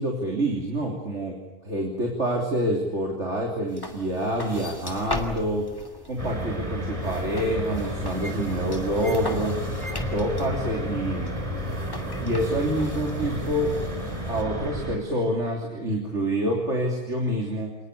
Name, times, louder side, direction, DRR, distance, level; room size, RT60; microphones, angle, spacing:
voice 1, 0.0-5.7 6.0-9.6 10.1-11.3 12.2-13.8 14.3-17.8, right 1 dB, 50° right, 0 dB, 3.7 m, -27 dB
sound 1, 3.7-14.4, left 1 dB, 15° left, 2.5 m, -39 dB
sound 2, 6.2-15.0, equal, 20° right, 4.0 m, -31 dB
27.5 x 20.0 x 8.3 m, 0.99 s
omnidirectional pair, 1.6 m